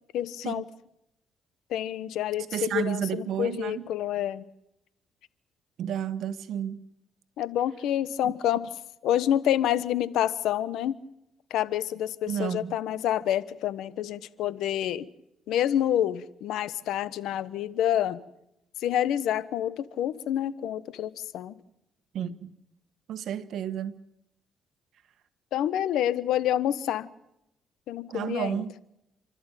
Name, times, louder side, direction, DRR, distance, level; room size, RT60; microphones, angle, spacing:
voice 1, 0.1-0.6 1.7-4.4 7.4-8.7 9.0-11.0 11.5-15.1 15.5-18.2 18.8-21.5 25.5-27.1 27.9-28.6, left 11 dB, 85° left, 1.2 m, -28 dB
voice 2, 2.5-3.9 5.8-6.8 8.2-8.3 12.3-12.7 22.1-22.6 23.1-23.9 28.1-28.7, right 9 dB, 75° right, 1.4 m, -31 dB
29.0 x 13.5 x 9.2 m
cardioid pair, 90°, 0 cm